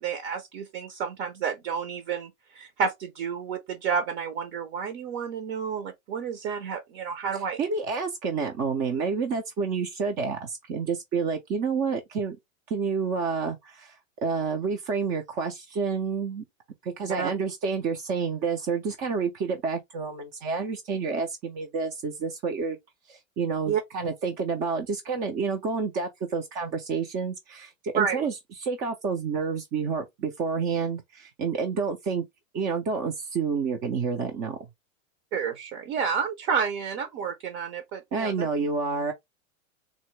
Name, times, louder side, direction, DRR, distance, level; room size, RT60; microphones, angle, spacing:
voice 1, 0.0-7.6 17.2-17.3 23.7-23.8 27.9-28.3 35.3-38.5, right 6 dB, 55° right, 0.8 m, -30 dB
voice 2, 7.3-12.4 12.7-16.4 16.8-22.8 23.1-32.2 32.5-34.6 38.1-39.1, right 5 dB, 25° right, 0.3 m, -29 dB
3.6 x 2.1 x 3.1 m
hypercardioid pair, 115°, 40 cm